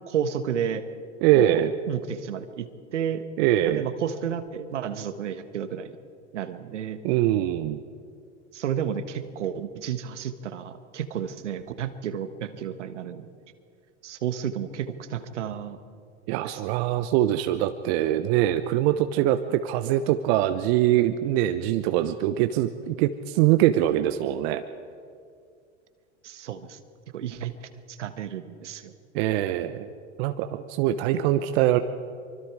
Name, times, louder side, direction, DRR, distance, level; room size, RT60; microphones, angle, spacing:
voice 1, 0.1-0.9 1.3-1.6 1.9-2.7 2.9-3.2 3.7-6.0 6.3-7.0 8.5-13.3 14.0-15.8 16.4-16.8 26.2-26.8 27.1-28.9, right 8 dB, 80° right, 10 dB, 1.5 m, -31 dB
voice 2, 1.2-1.7 3.4-3.8 7.0-7.8 16.3-24.6 29.1-29.9 30.2-31.8, right 13 dB, 60° right, 9 dB, 1.0 m, -23 dB
24.5 x 24.5 x 4.8 m, 2.3 s
hypercardioid pair, 85°, 35 cm